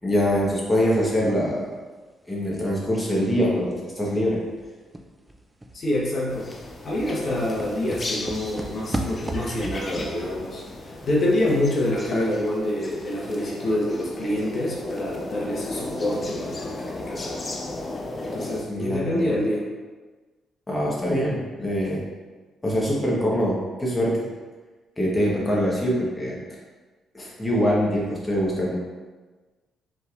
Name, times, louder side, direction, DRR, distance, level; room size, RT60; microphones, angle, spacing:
voice 1, 0.0-1.7 2.2-4.4 18.7-19.3 20.7-22.0 22.6-24.3 25.0-26.4 27.1-28.8, equal, 15° left, -5 dB, 1.2 m, -24 dB
sound 1, 3.2-3.5 3.9-4.0 4.3-12.0 12.3-12.4, right 1 dB, 15° right, 0.4 m, -36 dB
voice 2, 5.7-6.5 6.8-10.6 11.1-17.4 18.2-19.6, left 1 dB, 50° left, -4 dB, 1.0 m, -26 dB
sound 2, 6.3-18.6, left 2 dB, 30° left, 0.6 m, -36 dB
5.5 x 3.4 x 2.5 m, 1.3 s
cardioid pair, 90°, 0 cm